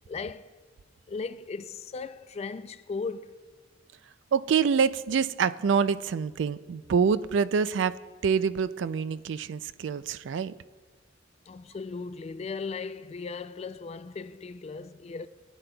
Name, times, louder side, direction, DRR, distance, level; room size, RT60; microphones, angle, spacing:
voice 1, 0.1-0.6 1.1-3.4 11.5-15.3, left 4 dB, 35° left, 0.3 m, -37 dB
voice 2, 4.3-10.5, right 6 dB, 65° right, 0.3 m, -26 dB
19.0 x 10.0 x 2.3 m
head